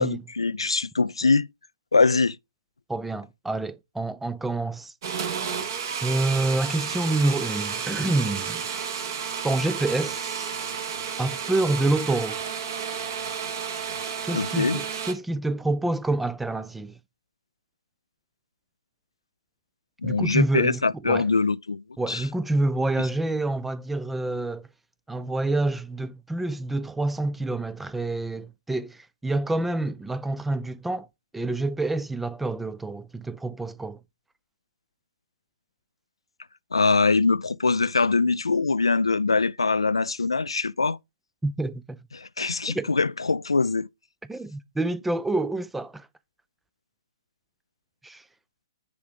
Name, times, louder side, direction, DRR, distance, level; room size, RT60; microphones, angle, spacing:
voice 1, 0.0-1.5 1.9-2.4 14.3-14.8 20.0-22.2 23.0-23.1 36.7-41.0 42.1-43.9, left 4 dB, 80° left, 0.3 m, -23 dB
voice 2, 2.9-4.9 6.0-8.6 9.4-10.5 11.2-12.4 14.2-16.9 20.0-21.3 22.0-24.6 25.1-31.1 31.3-34.0 41.4-42.0 42.7-42.9 44.3-46.1 48.0-48.2, right 2 dB, 5° right, 0.4 m, -27 dB
sound 1, 5.0-15.1, right 7 dB, 45° right, 1.6 m, -32 dB
9.9 x 3.6 x 4.9 m
figure-of-eight pair, 125°, 3 cm